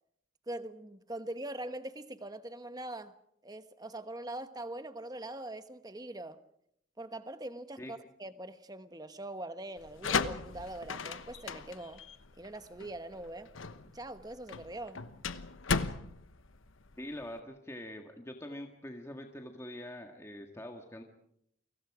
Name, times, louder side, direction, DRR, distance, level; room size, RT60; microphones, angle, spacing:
voice 1, 0.5-3.1 3.4-6.4 7.0-12.0 12.4-13.5 13.9-15.0, right 1 dB, 20° right, 1.2 m, -42 dB
sound 1, 9.8-17.4, left 4 dB, 80° left, 1.1 m, -36 dB
voice 2, 17.0-21.0, left 1 dB, 15° left, 1.8 m, -44 dB
29.5 x 24.5 x 4.9 m
head